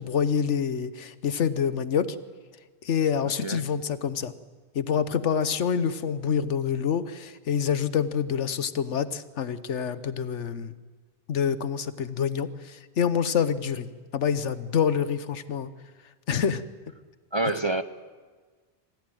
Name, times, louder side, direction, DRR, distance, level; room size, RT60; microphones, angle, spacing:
voice 1, 0.0-2.1 2.8-4.3 4.7-10.7 11.3-15.7 16.3-16.6, left 7 dB, 85° left, 13 dB, 1.3 m, -27 dB
voice 2, 17.3-17.8, right 2 dB, 30° right, 10 dB, 0.6 m, -26 dB
26.0 x 15.5 x 9.1 m, 1.5 s
omnidirectional pair, 1.2 m